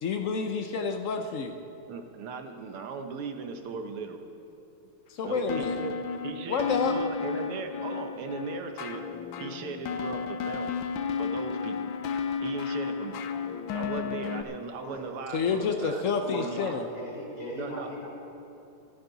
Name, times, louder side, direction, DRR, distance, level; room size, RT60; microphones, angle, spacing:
voice 1, 0.0-1.5 5.1-5.8 6.5-7.0 15.3-16.9, left 5 dB, 90° left, 5 dB, 0.6 m, -29 dB
voice 2, 1.9-4.3 5.2-5.9 6.2-9.0 9.4-10.7 11.2-11.9 12.4-13.2 13.7-16.0 16.3-16.8 17.6-17.9, right 5 dB, 85° right, 5 dB, 2.0 m, -38 dB
sound 1, 5.5-14.4, left 6 dB, 70° left, 1.4 m, -33 dB
voice 3, 16.2-18.1, left 1 dB, 40° left, -4 dB, 4.3 m, -39 dB
26.0 x 9.5 x 4.0 m, 2.9 s
omnidirectional pair, 2.4 m